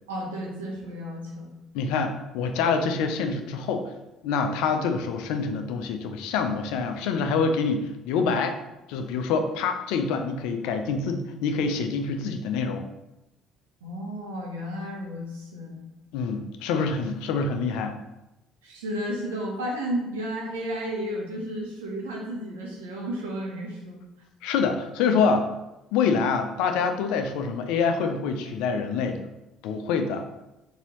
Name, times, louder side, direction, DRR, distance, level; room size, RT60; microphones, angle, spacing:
voice 1, 0.1-1.5 13.8-15.8 18.6-24.0, equal, 90° right, -2 dB, 0.9 m, -33 dB
voice 2, 1.7-3.9 4.2-8.6 8.9-12.8 16.1-18.0 24.4-25.5 25.9-29.2 29.6-30.3, left 5 dB, 75° left, 6 dB, 0.4 m, -26 dB
4.0 x 2.7 x 3.0 m, 0.96 s
hypercardioid pair, 60°, 0 cm